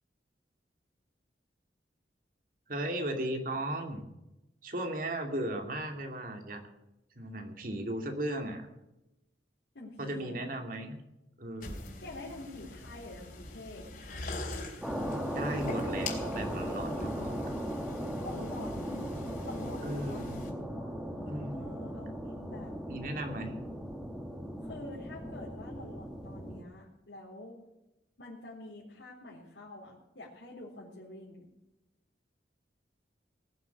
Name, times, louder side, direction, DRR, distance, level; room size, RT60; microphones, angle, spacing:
voice 1, 2.7-4.0 4.6-6.6 7.2-8.7 10.0-11.0 11.4-11.9 15.3-17.5 19.8-20.5 21.2-21.7 22.9-23.6, right 1 dB, 50° right, 4 dB, 2.6 m, -36 dB
voice 2, 9.7-10.5 12.0-14.5 18.2-19.0 19.4-20.2 20.8-22.7 24.6-27.6 28.2-31.5, left 2 dB, 85° left, -6 dB, 4.0 m, -47 dB
sound 1, 11.6-20.5, left 2 dB, 50° left, 3.4 m, -44 dB
sound 2, 14.8-26.6, equal, 5° right, 1.9 m, -37 dB
20.0 x 7.6 x 8.4 m, 0.90 s
head